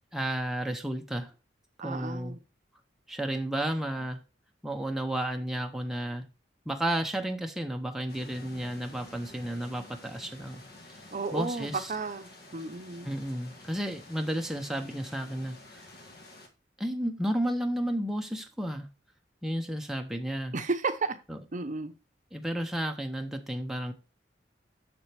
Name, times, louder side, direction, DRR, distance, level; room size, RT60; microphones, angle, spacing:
voice 1, 0.1-1.3 1.8-2.4 3.1-4.2 4.6-6.3 6.7-11.0 11.3-11.9 13.0-15.9 16.8-18.9 19.4-20.5 21.3-21.4 22.3-23.9, right 1 dB, ahead, 0.7 m, -32 dB
voice 2, 1.8-2.4 11.1-13.1 20.5-21.2 21.5-21.9, right 3 dB, 45° right, 0.7 m, -33 dB
sound 1, 8.1-16.5, left 2 dB, 55° left, 1.6 m, -50 dB
7.3 x 6.8 x 3.4 m
head